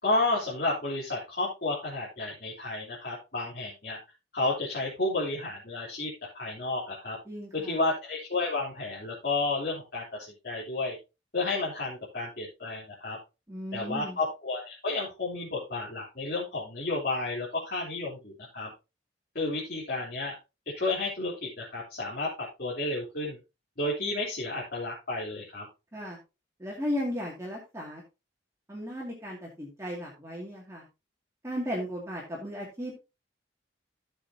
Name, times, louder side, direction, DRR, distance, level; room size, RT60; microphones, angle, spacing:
voice 1, 0.0-4.0 4.3-7.2 7.5-10.0 10.4-11.0 11.3-13.2 13.7-18.7 19.4-20.3 20.8-22.3 22.6-23.4 23.8-25.7, left 2 dB, 55° left, -5 dB, 3.5 m, -31 dB
voice 2, 7.3-7.8 13.5-14.2 25.9-26.2 26.6-28.0 28.7-30.8 31.4-32.9, equal, 15° right, -3 dB, 2.4 m, -35 dB
14.5 x 6.7 x 2.8 m, 0.27 s
head